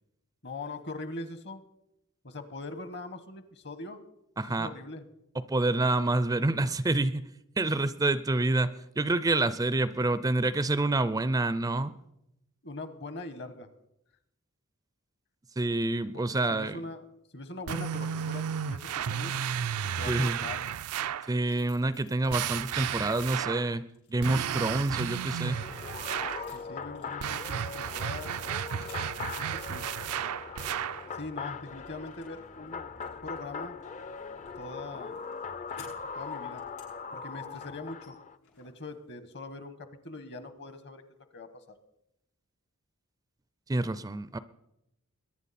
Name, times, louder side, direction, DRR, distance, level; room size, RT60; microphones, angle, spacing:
voice 1, 0.4-1.6 2.2-4.0 4.5-5.0 12.6-13.7 16.1-17.0 17.3-19.4 19.8-20.7 26.5-28.3 29.4-29.9 31.1-32.9 33.2-33.8 34.6-35.2 36.1-36.6 37.1-38.2 38.6-41.8, left 2 dB, 50° left, 11 dB, 1.2 m, -42 dB
voice 2, 4.4-4.7 5.5-7.2 7.6-11.9 15.6-16.8 20.1-20.4 21.3-25.6 43.7-44.4, right 2 dB, 15° right, 14 dB, 0.4 m, -27 dB
sound 1, 17.7-21.3 22.3-23.7 24.2-26.5 27.2-31.1, right 8 dB, 75° right, 0.4 m, -33 dB
sound 2, 21.0-23.0 23.5-29.2 29.6-30.2 30.6-31.2 31.5-39.4, left 4 dB, 75° left, 7.2 m, -57 dB
sound 3, 25.4-38.4, left 5 dB, 35° left, 0.5 m, -41 dB
22.5 x 10.5 x 4.2 m, 0.83 s
head